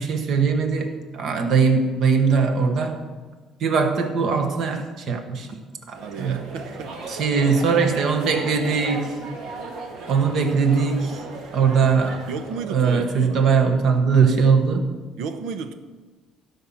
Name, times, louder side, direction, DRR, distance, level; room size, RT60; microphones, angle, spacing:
voice 1, 0.0-3.0 3.6-5.5 5.9-6.5 7.1-9.1 10.1-11.2 11.5-12.2 12.7-14.9, right 5 dB, 45° right, 1.4 m, -20 dB
sound 1, 5.9-12.6, right 3 dB, 75° right, 2.3 m, -36 dB
voice 2, 6.0-6.9 12.3-13.5 15.2-15.7, right 6 dB, 90° right, 1.0 m, -33 dB
16.5 x 5.7 x 7.5 m
cardioid pair, 175°, 0 cm